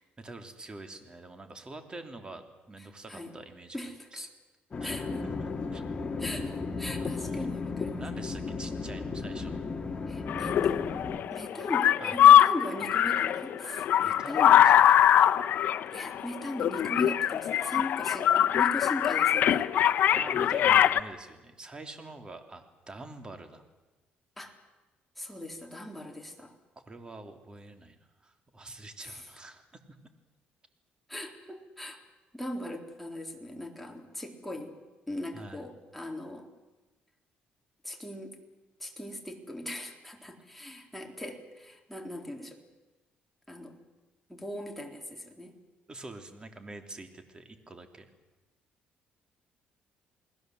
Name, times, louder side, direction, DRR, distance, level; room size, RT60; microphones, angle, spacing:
voice 1, 0.2-3.8 4.1-4.3 4.8-5.8 7.0-7.5 8.0-9.6 12.0-12.2 14.0-14.7 20.2-23.6 26.9-29.6 35.3-35.6 45.9-48.1, right 2 dB, 25° right, 7 dB, 3.2 m, -46 dB
voice 2, 3.7-4.3 4.8-5.1 6.2-8.0 10.1-10.9 11.3-14.6 15.9-19.9 24.4-24.6 25.2-26.6 29.0-29.3 31.1-32.0 32.3-34.7 35.1-36.5 37.8-38.4 38.8-42.6 43.5-43.7 44.3-45.6, left 1 dB, 5° left, 2 dB, 3.9 m, -39 dB
sound 1, 4.7-11.2, left 4 dB, 30° left, 2.2 m, -35 dB
sound 2, 10.3-21.0, left 10 dB, 65° left, 0.9 m, -22 dB
29.5 x 20.0 x 7.9 m, 1.1 s
cardioid pair, 115°, 3 cm